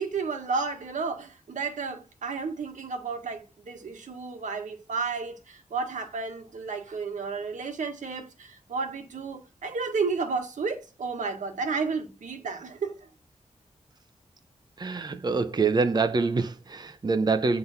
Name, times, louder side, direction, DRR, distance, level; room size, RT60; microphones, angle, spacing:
voice 1, 0.0-13.1, right 4 dB, 90° right, 1.7 m, -32 dB
voice 2, 14.8-17.6, right 4 dB, 35° right, 0.7 m, -25 dB
9.3 x 3.8 x 5.8 m
wide cardioid pair, 100°, 12 cm